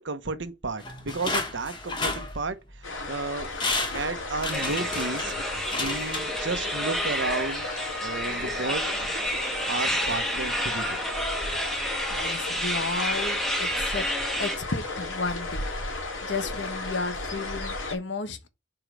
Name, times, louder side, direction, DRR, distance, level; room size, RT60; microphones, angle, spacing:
voice 1, 0.0-3.5 3.9-5.3 5.7-7.7 8.0-8.9 9.7-11.0, right 3 dB, 70° right, 1.0 m, -32 dB
sound 1, 0.8-2.8 3.2-3.3 3.6-6.8 7.1-7.2, left 3 dB, 25° left, 1.5 m, -32 dB
sound 2, 2.8-18.0, left 2 dB, 90° left, 2.4 m, -35 dB
sound 3, 4.5-14.6, equal, ahead, 1.3 m, -30 dB
voice 2, 12.1-14.1 14.4-15.9 16.2-18.5, left 3 dB, 65° left, 1.2 m, -33 dB
5.0 x 4.8 x 6.2 m
head